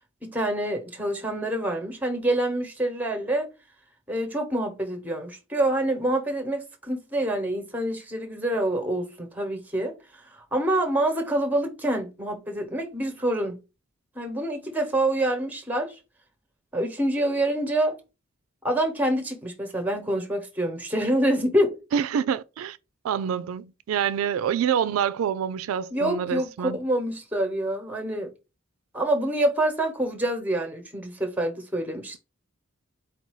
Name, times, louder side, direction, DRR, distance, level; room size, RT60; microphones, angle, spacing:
voice 1, 0.2-3.5 4.1-9.9 10.2-13.6 14.1-16.0 16.7-18.0 18.6-21.8 25.9-28.3 28.9-32.2, right 1 dB, 10° right, 1.0 m, -26 dB
voice 2, 21.9-22.8 23.0-26.8, right 8 dB, 85° right, 0.3 m, -26 dB
4.3 x 2.7 x 4.6 m
head